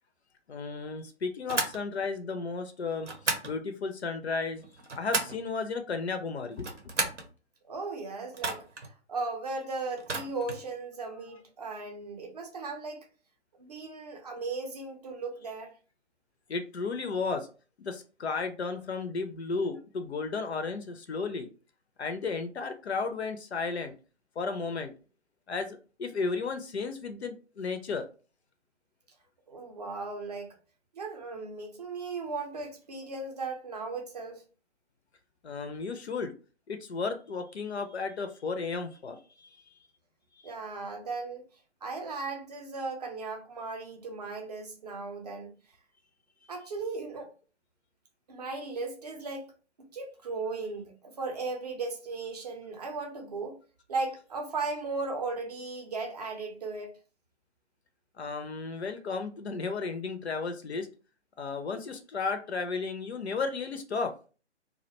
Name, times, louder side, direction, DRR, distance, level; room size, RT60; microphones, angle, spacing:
voice 1, 0.5-3.1 3.4-4.6 5.0-6.7 16.5-17.5 17.8-21.5 22.0-23.9 24.4-24.9 25.5-28.1 35.4-36.3 36.7-39.6 40.4-40.5 58.2-60.9 61.4-64.1, left 4 dB, 65° left, 0.5 m, -34 dB
sound 1, 1.5-1.8 3.0-3.5 4.6-5.4 6.5-7.3 8.3-8.9 10.0-10.6, right 3 dB, 85° right, 0.7 m, -33 dB
voice 2, 7.7-13.1 13.6-15.8 29.5-30.6 30.9-34.4 40.4-41.4 41.8-45.5 46.5-47.3 48.3-49.5 49.9-53.6 53.9-57.0, right 3 dB, 35° right, 0.5 m, -36 dB
2.4 x 2.1 x 2.8 m
figure-of-eight pair, 135°, 35 cm